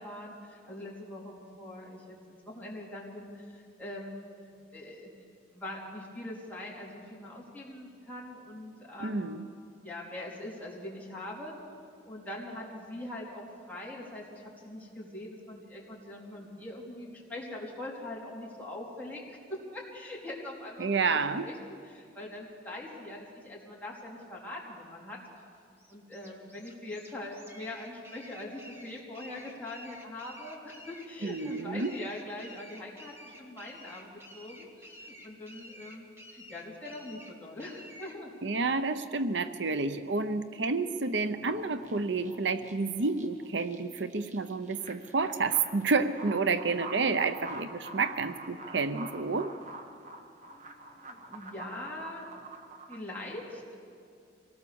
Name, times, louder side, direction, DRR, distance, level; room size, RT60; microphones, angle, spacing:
voice 1, 0.0-4.2 4.7-5.1 5.5-9.3 9.8-11.5 12.0-25.2 25.9-38.3 50.5-52.3 52.9-53.8, left 1 dB, 10° left, -5 dB, 3.9 m, -42 dB
voice 2, 9.0-9.5 20.8-21.5 31.2-31.9 38.4-49.5, right 4 dB, 75° right, 11 dB, 0.8 m, -30 dB
sound 1, 25.8-38.2, equal, 15° right, 1.7 m, -51 dB
sound 2, 41.3-53.0, right 3 dB, 40° right, 1.5 m, -46 dB
25.5 x 18.5 x 7.0 m, 2.3 s
head